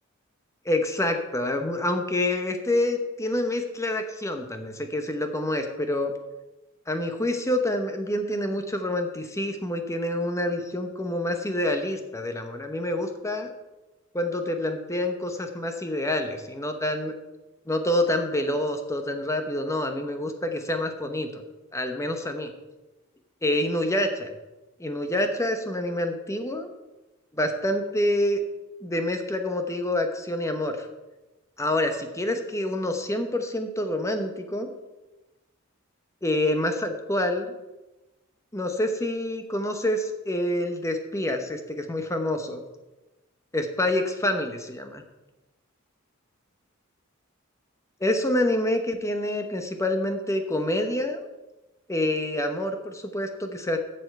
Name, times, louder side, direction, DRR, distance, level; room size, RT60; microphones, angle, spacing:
voice 1, 0.6-6.1 6.9-13.5 14.1-17.1 17.7-21.4 21.7-22.5 23.4-24.3 24.8-26.7 27.3-28.4 28.8-30.9 31.6-34.7 36.2-37.5 38.5-42.6 43.5-45.0 48.0-51.2 51.9-53.8, left 1 dB, 15° left, 6 dB, 1.0 m, -27 dB
8.1 x 7.1 x 6.6 m, 1.0 s
head